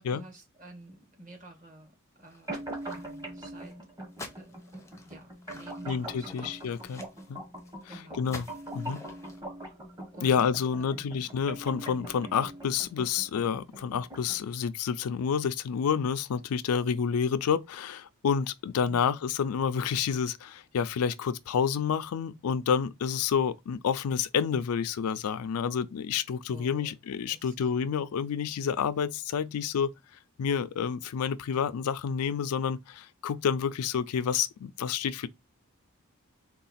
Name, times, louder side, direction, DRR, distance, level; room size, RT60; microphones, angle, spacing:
voice 1, 0.0-2.5 2.8-3.7 4.3-6.5 6.9-7.0 7.9-8.9 10.1-10.5 10.7-11.3 18.8-19.1 26.5-27.0 27.3-27.7, right 2 dB, 35° right, 1.2 m, -51 dB
sound 1, 2.3-3.3 3.6-3.7 4.1-7.8 8.2-9.4, left 2 dB, 15° left, 0.5 m, -48 dB
sound 2, 2.5-14.5, right 1 dB, 20° right, 1.0 m, -43 dB
voice 2, 5.8-7.0 7.3-7.4 7.9-8.5 8.7-9.0 10.2-29.9 30.4-35.3, left 7 dB, 85° left, 0.4 m, -29 dB
3.8 x 2.4 x 4.1 m
head